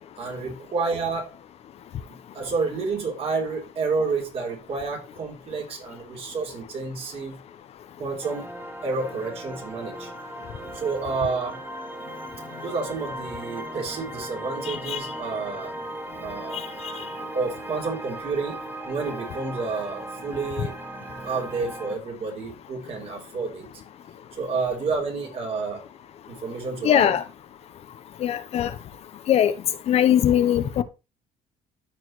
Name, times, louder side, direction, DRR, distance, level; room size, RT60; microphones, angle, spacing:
voice 1, 0.2-1.3 2.3-7.4 8.0-8.5 8.8-10.1 10.7-11.6 12.6-15.7 16.2-16.7 17.3-18.6 18.8-20.7 21.2-23.7 24.3-25.8 26.3-27.2, right 4 dB, 50° right, 3.3 m, -29 dB
sound 1, 8.2-22.0, right 1 dB, 15° right, 0.9 m, -37 dB
voice 2, 14.7-15.0 26.8-27.2 28.2-28.7 29.3-29.5 29.9-30.8, left 10 dB, 55° left, 0.8 m, -20 dB
13.5 x 4.7 x 3.1 m
cardioid pair, 120°, 13 cm